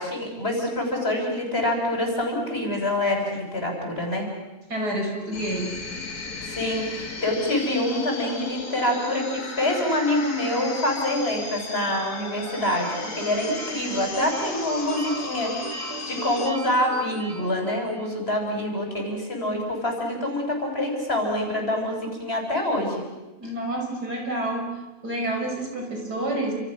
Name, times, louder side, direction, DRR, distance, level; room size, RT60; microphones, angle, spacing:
voice 1, 0.0-4.3 6.5-23.0, left 1 dB, 40° left, 2 dB, 6.3 m, -26 dB
voice 2, 4.7-5.8 23.4-26.5, right 1 dB, 85° right, 1 dB, 6.4 m, -29 dB
sound 1, 5.3-16.5, left 3 dB, 70° left, 3.2 m, -36 dB
sound 2, 12.5-18.2, right 3 dB, 70° right, 3.0 m, -38 dB
30.0 x 27.0 x 6.2 m, 1.0 s
omnidirectional pair, 1.7 m